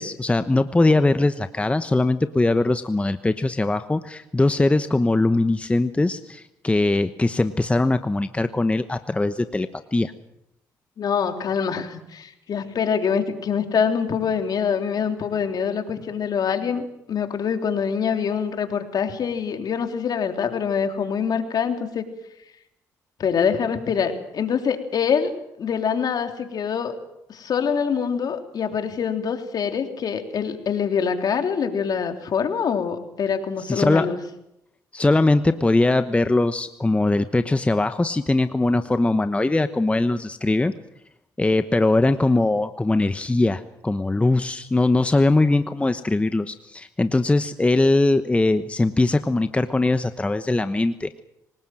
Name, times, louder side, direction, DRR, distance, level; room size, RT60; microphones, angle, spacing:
voice 1, 0.0-10.1 33.7-34.1 34.9-40.7 41.4-51.2, left 2 dB, 15° left, 10 dB, 1.1 m, -21 dB
voice 2, 11.0-22.0 23.2-25.3 25.6-27.0 27.3-34.2, left 7 dB, 55° left, 5 dB, 3.3 m, -25 dB
24.5 x 19.0 x 7.7 m, 0.82 s
supercardioid pair, 65°, 8 cm